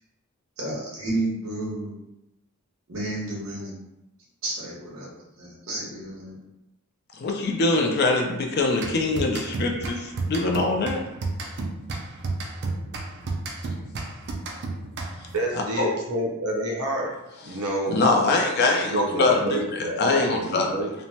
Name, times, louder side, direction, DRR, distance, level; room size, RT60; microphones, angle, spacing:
voice 1, 0.6-2.0 2.9-3.8 4.4-6.4, right 2 dB, 65° right, -6 dB, 1.1 m, -31 dB
voice 2, 7.2-11.0 15.8-15.9 17.9-20.7, left 3 dB, 45° left, 2 dB, 0.4 m, -23 dB
sound 1, 8.8-15.4, right 2 dB, 50° right, 0.4 m, -32 dB
voice 3, 15.3-17.1 17.4-18.0 18.8-20.9, right 1 dB, 85° right, -1 dB, 0.7 m, -28 dB
3.1 x 2.1 x 2.7 m, 0.91 s
head